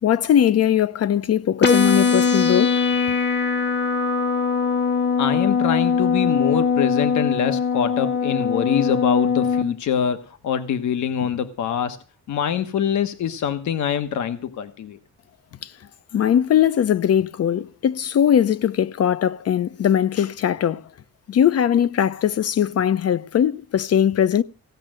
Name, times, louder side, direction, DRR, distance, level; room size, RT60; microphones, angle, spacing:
voice 1, 0.0-2.8 15.6-15.7 16.1-20.9 21.3-24.4, left 9 dB, 55° left, 0.8 m, -20 dB
sound 1, 1.6-9.6, left 5 dB, 35° left, 1.1 m, -21 dB
voice 2, 5.2-15.0, left 8 dB, 70° left, 1.3 m, -24 dB
16.5 x 6.3 x 9.0 m
cardioid pair, 90°, 30 cm